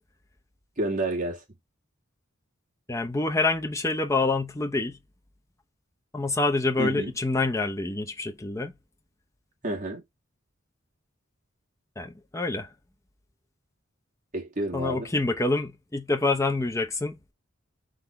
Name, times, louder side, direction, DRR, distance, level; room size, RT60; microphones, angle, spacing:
voice 1, 0.8-1.4 6.8-7.1 9.6-10.0 14.3-15.1, right 1 dB, 40° right, 1.9 m, -29 dB
voice 2, 2.9-5.0 6.1-8.7 12.0-12.7 14.7-17.2, left 3 dB, 15° left, 0.7 m, -26 dB
3.9 x 3.2 x 4.3 m
head